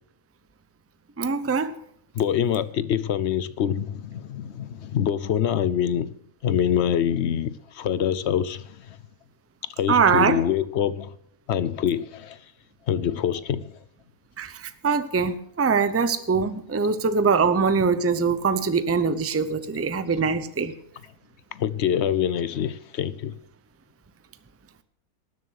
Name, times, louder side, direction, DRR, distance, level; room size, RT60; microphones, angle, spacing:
voice 1, 1.2-1.7 9.9-10.4 14.4-20.7, right 5 dB, 20° right, 0.4 m, -23 dB
voice 2, 2.1-6.1 6.4-9.0 9.8-11.1 11.5-12.4 12.9-13.8 21.5-23.3, left 9 dB, 60° left, 0.8 m, -25 dB
19.5 x 6.9 x 6.4 m
omnidirectional pair, 1.5 m